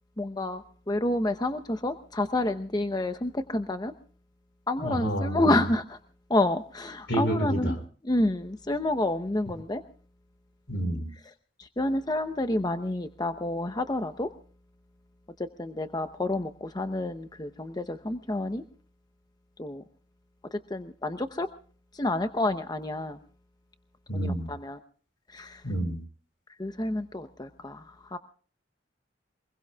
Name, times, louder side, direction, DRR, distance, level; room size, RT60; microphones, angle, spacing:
voice 1, 0.2-0.6 0.9-3.9 4.7-6.0 6.3-7.7 8.1-9.8 11.8-14.3 15.4-18.6 19.6-19.8 20.7-21.5 22.0-23.2 24.1-24.8 25.3-25.6 26.6-27.8 28.1-28.2, left 1 dB, 20° left, 9 dB, 0.8 m, -29 dB
voice 2, 4.8-5.6 7.1-7.8 10.7-11.1 24.1-24.5 25.6-26.0, right 1 dB, 70° left, 8 dB, 4.7 m, -29 dB
25.5 x 21.5 x 2.3 m, 0.43 s
head